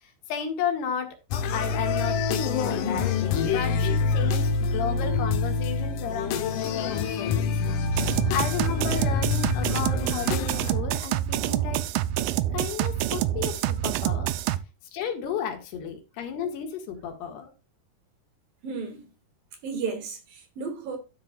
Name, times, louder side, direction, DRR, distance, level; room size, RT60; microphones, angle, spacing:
voice 1, 0.0-7.6 7.9-11.8 12.5-14.3 14.9-17.5, left 8 dB, 85° left, 3.7 m, -33 dB
sound 1, 1.3-10.7, left 5 dB, 70° left, 2.2 m, -26 dB
sound 2, 7.9-14.6, right 13 dB, 80° right, 2.0 m, -27 dB
voice 2, 18.6-19.1 19.6-21.0, right 5 dB, 65° right, 3.4 m, -33 dB
12.5 x 7.6 x 2.4 m
omnidirectional pair, 4.6 m